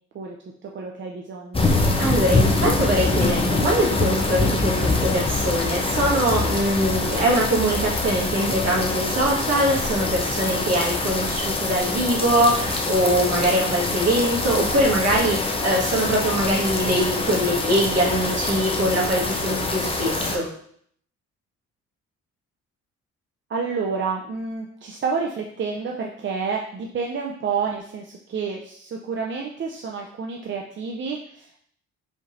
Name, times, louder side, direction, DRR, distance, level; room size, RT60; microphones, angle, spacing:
voice 1, 0.6-1.7 23.5-31.6, right 5 dB, 40° right, 0 dB, 0.5 m, -29 dB
sound 1, 1.5-20.4, left 3 dB, 20° left, 0.6 m, -24 dB
voice 2, 2.0-20.5, right 1 dB, 55° right, -4 dB, 1.6 m, -22 dB
5.1 x 3.3 x 2.6 m, 0.64 s
cardioid pair, 90°, 30 cm